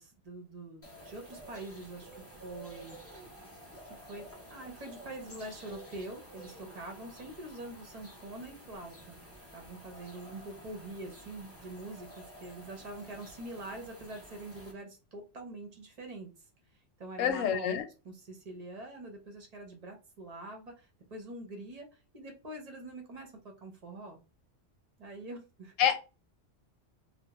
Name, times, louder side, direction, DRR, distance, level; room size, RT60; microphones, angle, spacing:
voice 1, 0.0-3.0 3.8-4.2 4.5-9.2 9.5-16.3 17.0-17.7 18.0-24.2 25.0-25.7, right 2 dB, 40° right, 3 dB, 0.6 m, -45 dB
sound 1, 0.8-14.7, right 1 dB, 20° left, 0.3 m, -51 dB
voice 2, 17.2-17.8 25.8-26.0, left 9 dB, 90° left, 7 dB, 1.0 m, -27 dB
2.3 x 2.1 x 2.9 m, 0.31 s
omnidirectional pair, 1.3 m